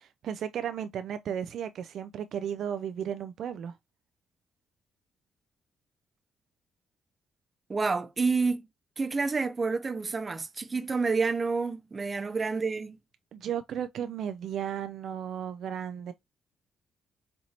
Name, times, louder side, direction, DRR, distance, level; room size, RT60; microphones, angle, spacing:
voice 1, 0.0-3.8 13.3-16.1, right 9 dB, 70° right, 0.3 m, -34 dB
voice 2, 7.7-8.7 9.0-13.0, right 4 dB, 30° right, 0.6 m, -29 dB
4.3 x 2.6 x 2.8 m
cardioid pair, 90°, 0 cm